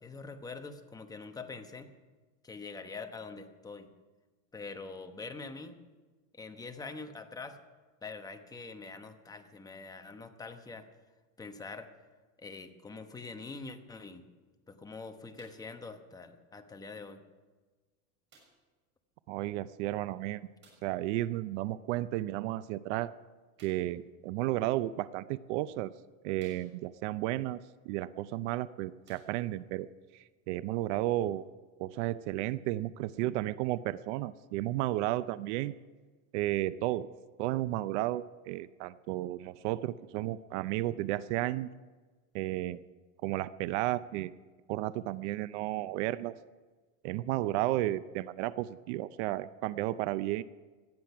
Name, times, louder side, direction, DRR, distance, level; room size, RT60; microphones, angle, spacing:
voice 1, 0.0-1.9 2.4-3.9 4.5-5.8 6.3-7.6 8.0-10.9 11.4-11.9 12.4-14.3 14.7-17.2, left 4 dB, 10° left, 6 dB, 1.0 m, -44 dB
sound 1, 15.4-15.8 16.7-16.8 18.3-18.7 20.6-21.0 23.5-24.0 25.0-25.1 25.7-25.8 26.4-27.1 28.3-28.4 29.0-29.7 30.5-30.6, right 3 dB, 30° right, 6.4 m, -62 dB
voice 2, 19.3-20.5 20.8-23.1 23.6-25.9 26.2-27.6 27.9-29.9 30.1-31.4 31.8-35.7 36.3-37.1 37.4-41.7 42.3-42.8 43.2-44.3 44.7-46.3 47.0-50.4, right 15 dB, 60° right, 16 dB, 0.6 m, -33 dB
18.0 x 12.5 x 5.9 m, 1.3 s
supercardioid pair, 145°, 41 cm